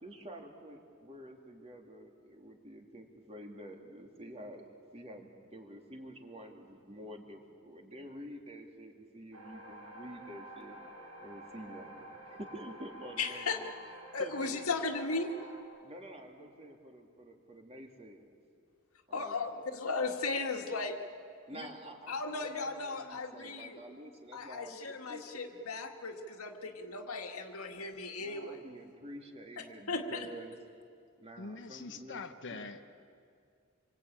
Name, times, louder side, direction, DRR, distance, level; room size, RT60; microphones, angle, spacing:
voice 1, 0.0-4.6 4.9-10.8 11.2-13.7 14.2-15.1 15.8-18.3 19.1-19.4 21.5-25.7 28.2-30.5 31.2-32.2 32.5-32.7, right 1 dB, 30° right, 2 dB, 2.8 m, -49 dB
sound 1, 9.3-15.6, right 1 dB, 90° right, 6.1 m, -50 dB
voice 2, 13.2-13.6 14.1-15.3 19.1-21.0 21.5-21.7 22.1-23.8 24.3-28.6 29.6-30.3, left 3 dB, 75° left, 4 dB, 2.0 m, -36 dB
voice 3, 31.4-32.8, left 4 dB, 60° left, 7 dB, 1.1 m, -44 dB
26.5 x 24.0 x 8.9 m, 2.3 s
head